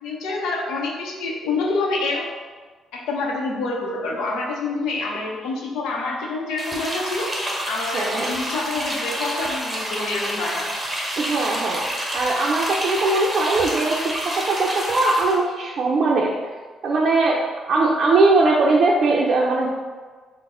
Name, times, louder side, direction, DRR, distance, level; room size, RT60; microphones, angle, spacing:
voice 1, 0.0-2.4 2.9-10.8, left 3 dB, 90° left, -1 dB, 0.6 m, -27 dB
sound 1, 6.6-15.4, equal, 10° right, 0.8 m, -28 dB
voice 2, 7.9-8.3 11.2-11.9 12.1-16.3 16.8-17.4 17.7-19.7, right 3 dB, 55° right, -3 dB, 0.4 m, -20 dB
3.9 x 2.0 x 3.7 m, 1.4 s
cardioid pair, 90°, 0 cm